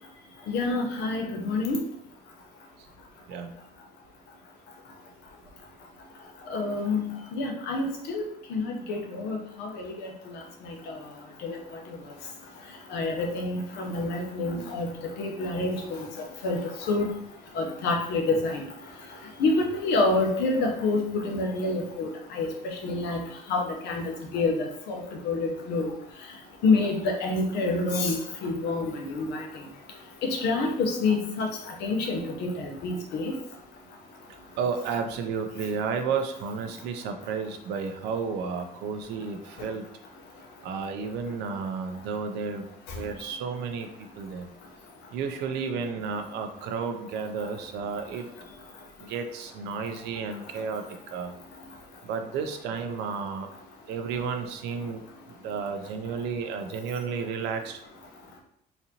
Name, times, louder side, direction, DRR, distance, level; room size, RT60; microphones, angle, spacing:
voice 1, 0.5-1.8 6.5-8.2 8.5-10.1 10.9-11.0 11.4-11.6 12.9-14.9 15.2-16.6 16.9-17.1 17.5-18.6 19.4-22.5 22.8-23.2 23.5-25.9 26.6-28.1 28.4-29.5 30.2-31.5 31.8-33.3, left 3 dB, 85° left, 2 dB, 0.8 m, -27 dB
voice 2, 34.6-39.8 40.6-44.5 45.1-48.3 49.0-50.8 51.1-51.3 52.0-53.5 53.9-55.0 55.4-57.8, right 5 dB, 90° right, 6 dB, 0.5 m, -32 dB
4.0 x 2.6 x 2.8 m, 0.71 s
cardioid pair, 110°, 17 cm